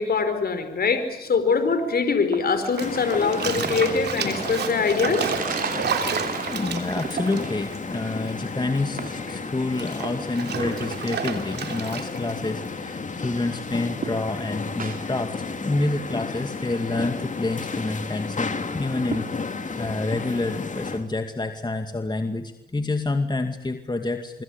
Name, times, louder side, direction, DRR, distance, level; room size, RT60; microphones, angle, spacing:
voice 1, 0.0-5.3, left 5 dB, 65° left, 9 dB, 4.5 m, -23 dB
sound 1, 1.3-21.1, right 5 dB, 55° right, 4.0 m, -39 dB
Bathtub (filling or washing), 2.6-8.5 8.8-12.3, right 7 dB, 75° right, 3.3 m, -31 dB
sound 2, 2.8-21.0, left 4 dB, 45° left, 3.0 m, -33 dB
voice 2, 6.4-24.4, left 2 dB, 25° left, 7 dB, 2.3 m, -28 dB
25.5 x 24.0 x 8.7 m, 0.85 s
supercardioid pair, 50°, 17 cm